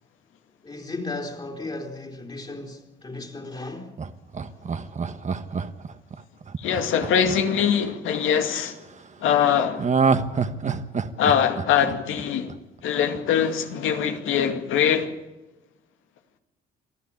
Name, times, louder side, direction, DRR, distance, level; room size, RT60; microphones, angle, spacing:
voice 1, 0.6-4.0 10.0-10.3, left 2 dB, 25° left, 3.4 m, -35 dB
Laughter, 4.0-8.2 9.8-12.8 13.1-13.2, right 5 dB, 35° right, 1.3 m, -26 dB
voice 2, 6.6-8.8 9.2-9.8 11.2-12.5 12.8-15.1, left 8 dB, 85° left, 2.3 m, -22 dB
24.0 x 14.5 x 8.6 m
cardioid pair, 90°, 20 cm